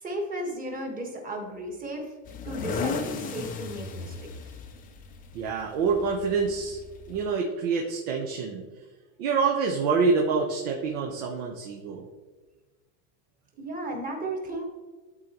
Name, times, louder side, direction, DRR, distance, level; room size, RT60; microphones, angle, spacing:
voice 1, 0.0-2.1 2.4-4.3 13.6-14.6, right 1 dB, 20° right, 1 dB, 1.4 m, -34 dB
sound 1, 2.3-7.3, left 5 dB, 20° left, 0.4 m, -36 dB
voice 2, 5.3-6.8 7.1-8.6 9.2-12.0, right 4 dB, 70° right, 0 dB, 1.1 m, -26 dB
12.0 x 4.1 x 3.0 m, 1.3 s
supercardioid pair, 150°, 42 cm